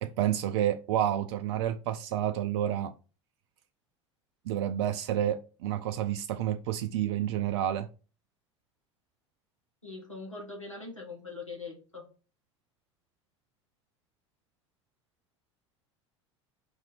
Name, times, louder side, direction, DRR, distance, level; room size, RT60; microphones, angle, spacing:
voice 1, 0.0-2.9 4.5-7.9, right 11 dB, 55° right, 0.4 m, -29 dB
voice 2, 9.8-12.1, left 3 dB, 90° left, 1.3 m, -42 dB
4.6 x 2.6 x 4.0 m
figure-of-eight pair, 75°, 16 cm